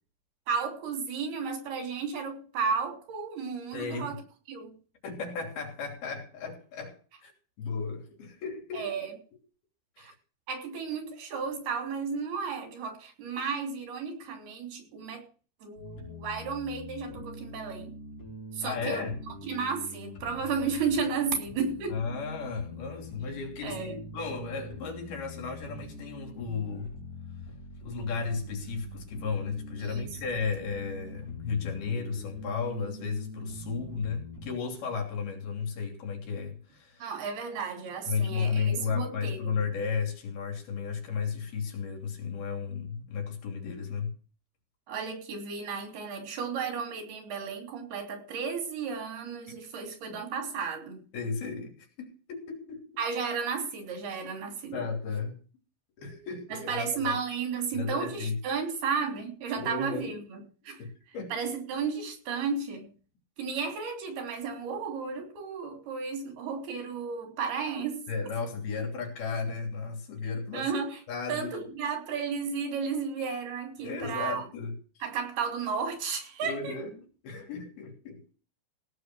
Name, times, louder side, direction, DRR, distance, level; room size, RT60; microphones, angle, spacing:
voice 1, 0.5-4.2 4.5-4.8 8.7-9.1 10.0-10.1 10.5-15.3 15.6-17.9 18.5-19.1 19.4-22.0 23.6-24.0 29.8-30.1 37.0-39.6 44.9-51.0 53.0-54.8 56.5-60.8 61.3-62.9 63.4-68.1 70.5-71.0 71.3-74.4 75.0-76.7, right 5 dB, 90° right, 5.2 m, -33 dB
voice 2, 3.7-4.2 5.0-7.3 7.6-8.9 10.0-10.1 18.6-19.2 21.9-26.9 27.8-37.1 38.1-44.1 49.5-49.6 51.1-53.0 54.7-55.4 56.0-57.2 57.7-58.4 59.5-60.2 60.7-61.3 68.1-70.7 71.1-71.5 73.8-74.8 76.4-78.2, left 5 dB, 80° left, 5.0 m, -34 dB
sound 1, 15.8-34.5, left 1 dB, 45° left, 6.0 m, -44 dB
17.0 x 6.9 x 6.2 m
omnidirectional pair, 4.3 m